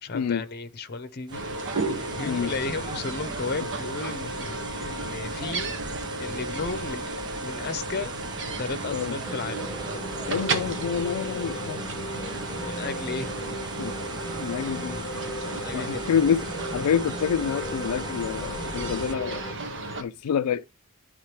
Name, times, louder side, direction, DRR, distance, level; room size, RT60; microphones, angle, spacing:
voice 1, 0.0-1.4 1.9-5.7 6.2-7.0 7.4-8.1 8.6-9.7 12.6-13.3 15.6-16.1, left 4 dB, 45° left, 0.7 m, -34 dB
sound 1, 1.3-19.1, right 3 dB, 20° right, 0.4 m, -40 dB
sound 2, 1.3-20.0, right 2 dB, 55° right, 1.0 m, -34 dB
sound 3, 9.2-19.5, left 1 dB, 20° left, 1.4 m, -37 dB
voice 2, 10.3-11.8 13.8-13.9 14.4-15.0 15.7-16.5 16.7-19.5 20.0-20.7, left 7 dB, 90° left, 0.4 m, -27 dB
11.0 x 3.7 x 3.1 m
head